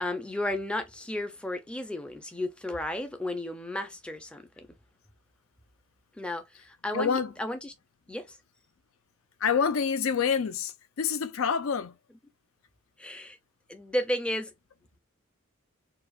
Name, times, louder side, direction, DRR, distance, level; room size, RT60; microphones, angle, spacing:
voice 1, 0.0-4.7 6.2-7.7 8.1-8.4 13.0-13.4 13.7-14.5, left 1 dB, 5° left, 0.4 m, -33 dB
voice 2, 6.9-7.4 9.4-12.0, left 6 dB, 80° left, 0.5 m, -27 dB
4.6 x 2.3 x 2.4 m
head